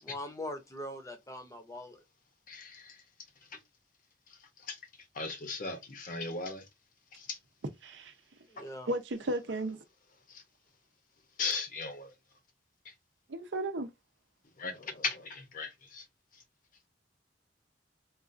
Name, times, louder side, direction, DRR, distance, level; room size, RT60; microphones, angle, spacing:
voice 1, 0.0-2.0 8.5-8.9, left 1 dB, 20° left, 0.7 m, -42 dB
voice 2, 2.5-2.9 4.7-4.8 5.2-6.6 7.3-7.4 11.4-12.1 14.6-16.0, left 4 dB, 50° left, 0.8 m, -37 dB
voice 3, 7.8-8.1 8.9-9.8 13.3-13.9, right 1 dB, 75° right, 0.6 m, -34 dB
3.9 x 2.4 x 2.5 m
head